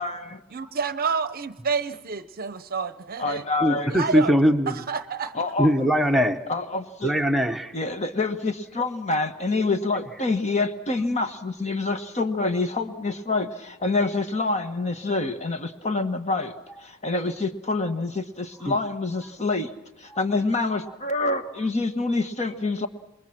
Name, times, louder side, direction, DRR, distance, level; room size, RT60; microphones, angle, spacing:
voice 1, 0.0-0.4 3.2-4.0 5.3-5.7 6.5-7.1 7.7-22.9, left 3 dB, 30° left, 8 dB, 1.5 m, -27 dB
voice 2, 0.5-3.4 3.9-4.3 4.7-5.3, right 5 dB, 40° right, 13 dB, 0.9 m, -29 dB
voice 3, 3.6-4.7 5.6-6.4 7.0-7.7, equal, ahead, 4 dB, 1.2 m, -20 dB
27.5 x 22.5 x 6.0 m, 0.99 s
head